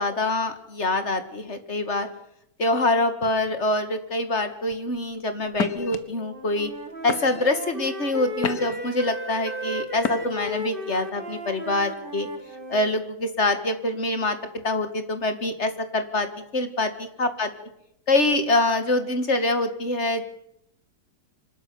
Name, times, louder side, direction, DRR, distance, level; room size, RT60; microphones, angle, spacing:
voice 1, 0.0-2.1 2.6-6.7 7.0-12.3 12.7-14.4 14.6-16.3 16.5-16.9 17.2-17.5 18.1-20.2, left 2 dB, 40° left, 9 dB, 2.2 m, -25 dB
sound 1, 4.7-5.0 5.5-6.0 6.6-6.8 7.1-7.6 8.1-8.9 10.0-10.5, left 6 dB, 55° left, 1.8 m, -30 dB
Wind instrument woodwind instrument, 6.1-12.9, equal, 30° right, 2.0 m, -35 dB
25.0 x 12.5 x 9.7 m, 0.75 s
omnidirectional pair, 1.9 m